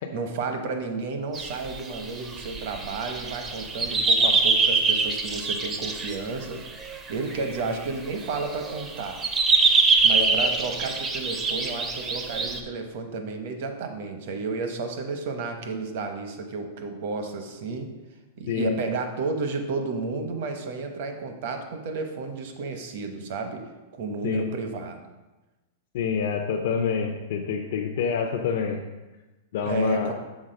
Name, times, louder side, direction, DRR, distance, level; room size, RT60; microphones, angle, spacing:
voice 1, 0.1-6.6 7.1-9.2 10.0-17.9 18.4-23.7 23.9-25.0 29.6-30.1, right 4 dB, 50° right, 5 dB, 0.9 m, -32 dB
sound 1, 1.3-6.2 6.7-7.8 8.3-12.6, right 4 dB, 15° right, 0.5 m, -24 dB
voice 2, 10.1-10.5 18.5-18.7 24.2-24.4 25.9-28.8 29.5-30.1, left 6 dB, 60° left, 1 dB, 0.6 m, -27 dB
6.2 x 4.0 x 5.2 m, 1.1 s
supercardioid pair, 170°, 0 cm